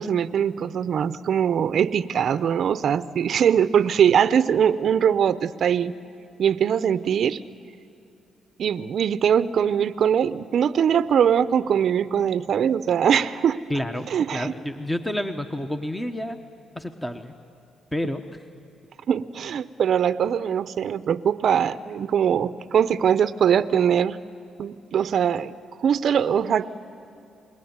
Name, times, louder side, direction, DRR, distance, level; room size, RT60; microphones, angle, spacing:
voice 1, 0.0-5.9 6.4-7.4 8.6-13.6 14.1-14.5 19.1-24.2 24.6-25.5 25.8-26.7, right 8 dB, 60° right, 14 dB, 0.7 m, -22 dB
voice 2, 13.7-16.4 16.7-17.3 17.9-18.2, left 1 dB, 10° left, 7 dB, 1.1 m, -29 dB
27.5 x 21.0 x 9.6 m, 2.7 s
cardioid pair, 90°, 0 cm